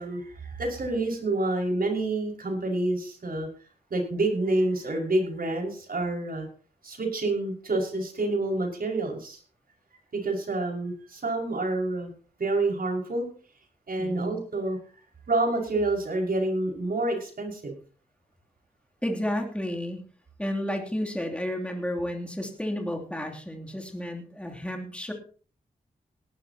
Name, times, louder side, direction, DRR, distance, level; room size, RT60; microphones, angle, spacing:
voice 1, 0.0-3.5 3.9-6.5 6.8-9.4 10.1-12.1 12.4-13.3 13.9-14.8 15.3-17.8, right 2 dB, 65° right, 1 dB, 5.7 m, -28 dB
voice 2, 14.0-14.3 19.0-20.0 20.4-25.1, equal, 5° left, 2 dB, 2.9 m, -31 dB
18.5 x 12.5 x 2.9 m, 0.40 s
cardioid pair, 50°, 16 cm